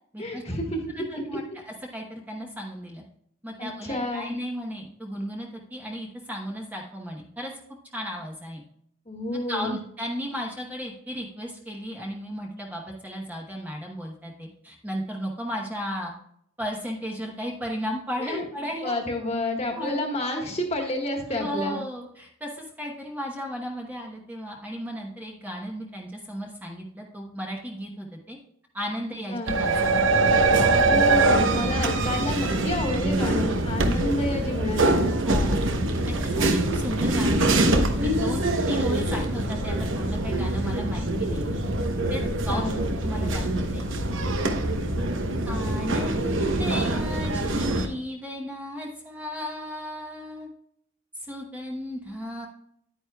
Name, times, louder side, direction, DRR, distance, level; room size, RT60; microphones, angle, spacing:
voice 1, 0.2-1.0 3.6-4.3 9.1-9.8 18.2-18.4 18.8-21.8 29.3-29.5 30.8-35.0 42.2-42.8, left 1 dB, 30° left, 2 dB, 1.5 m, -30 dB
voice 2, 0.9-3.0 3.4-7.5 7.9-8.6 9.5-16.1 16.6-19.0 19.7-20.0 21.3-28.4 28.7-30.2 35.2-35.7 36.0-41.6 42.1-42.7 43.0-43.8 45.5-50.5 51.2-52.5, equal, 10° right, -1 dB, 1.0 m, -35 dB
sound 1, 29.5-47.9, right 2 dB, 60° right, 1.0 m, -24 dB
10.5 x 9.2 x 2.3 m, 0.72 s
head